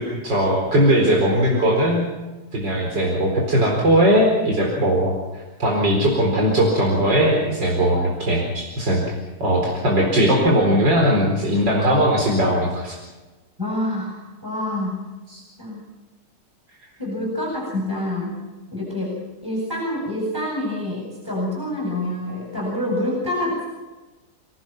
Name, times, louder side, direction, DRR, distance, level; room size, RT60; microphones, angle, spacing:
voice 1, 0.2-2.0 2.5-9.0 9.4-13.0 15.3-15.4, equal, 80° right, -1 dB, 5.1 m, -19 dB
voice 2, 13.6-15.1 15.6-15.8 17.0-18.4 18.7-23.7, left 1 dB, 10° right, -2 dB, 7.8 m, -27 dB
30.0 x 18.5 x 6.0 m, 1.2 s
omnidirectional pair, 1.9 m